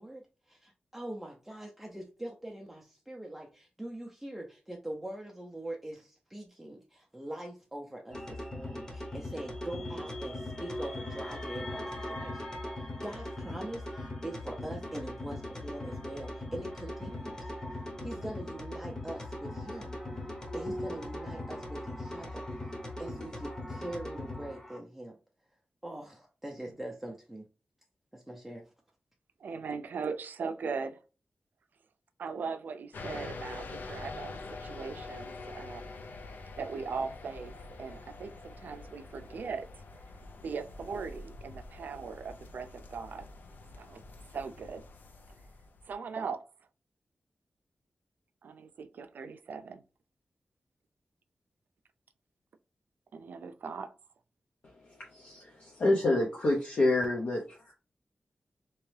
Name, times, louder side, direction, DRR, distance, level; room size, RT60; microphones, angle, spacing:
voice 1, 0.0-20.0 20.5-25.2 25.8-27.4 28.1-28.7, right 1 dB, 5° right, 0.5 m, -43 dB
sound 1, 8.1-24.8, left 1 dB, 25° left, 0.9 m, -39 dB
voice 2, 29.4-31.0 32.2-35.9 36.6-39.7 40.4-43.3 43.7-44.0 44.3-44.8 45.9-46.4 48.4-49.8 53.1-53.9, right 5 dB, 85° right, 0.4 m, -39 dB
sound 2, 32.9-45.9, left 3 dB, 90° left, 0.5 m, -46 dB
voice 3, 55.1-57.7, left 2 dB, 60° left, 0.7 m, -28 dB
3.4 x 3.0 x 3.2 m
wide cardioid pair, 165°, 3 cm